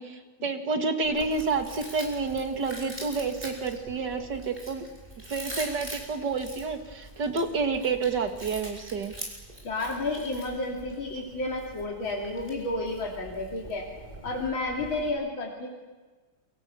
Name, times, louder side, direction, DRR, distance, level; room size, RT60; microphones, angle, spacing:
voice 1, 0.0-4.8 5.3-9.1, right 4 dB, 55° right, 6 dB, 2.5 m, -29 dB
Chewing mastication, 1.0-15.1, right 1 dB, 20° right, 5.9 m, -44 dB
voice 2, 9.6-13.9 14.2-15.7, left 2 dB, 65° left, -2 dB, 3.7 m, -31 dB
29.0 x 23.5 x 7.1 m, 1.3 s
omnidirectional pair, 2.3 m